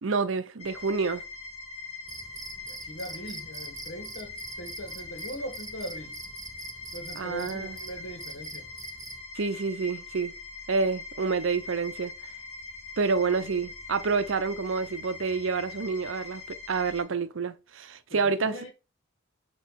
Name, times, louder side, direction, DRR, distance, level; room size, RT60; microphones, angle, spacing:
voice 1, 0.0-1.2 7.2-7.8 9.4-10.3 10.7-12.1 13.0-18.7, right 4 dB, 75° right, 0.6 m, -28 dB
sound 1, 0.6-17.0, left 3 dB, 35° left, 1.4 m, -42 dB
Cricket, 2.1-9.2, right 3 dB, 20° right, 0.8 m, -44 dB
voice 2, 2.7-6.2 6.9-8.7 18.1-18.7, equal, 80° left, 1.6 m, -40 dB
6.4 x 3.0 x 5.7 m
head